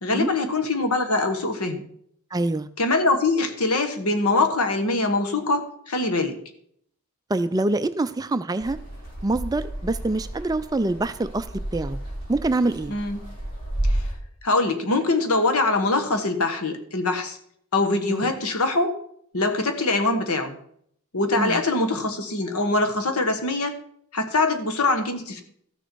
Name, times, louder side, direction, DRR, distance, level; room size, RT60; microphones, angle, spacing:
voice 1, 0.0-1.8 2.8-6.4 12.9-13.2 13.8-14.0 14.4-17.4 17.7-18.9 19.3-20.6 21.1-23.8 24.1-25.4, left 2 dB, 85° left, 7 dB, 1.4 m, -23 dB
voice 2, 2.3-2.7 7.3-8.8 9.2-11.5 11.7-12.0 12.3-12.9 18.1-18.3 21.4-21.6, right 2 dB, 15° right, 12 dB, 0.3 m, -25 dB
sound 1, 8.6-14.1, right 1 dB, 65° left, 5.4 m, -31 dB
13.5 x 6.7 x 4.6 m, 0.67 s
head